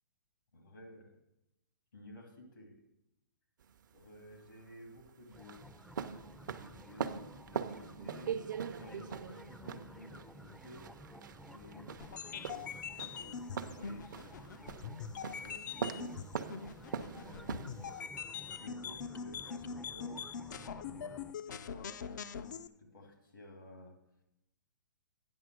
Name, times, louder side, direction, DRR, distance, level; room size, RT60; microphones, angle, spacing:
voice 1, 0.5-1.1 1.9-2.8 3.9-5.7 6.7-8.4 8.6-10.9 11.4-14.9 15.2-16.6 17.1-17.8 18.4-24.0, left 1 dB, 85° left, 1 dB, 2.6 m, -54 dB
sound 1, 3.6-18.0, right 7 dB, 70° right, 0.6 m, -42 dB
sound 2, 5.3-21.3, right 1 dB, ahead, 0.4 m, -54 dB
sound 3, 12.0-22.7, left 7 dB, 65° left, 0.5 m, -43 dB
9.5 x 6.0 x 6.1 m, 0.88 s
hypercardioid pair, 130°, 11 cm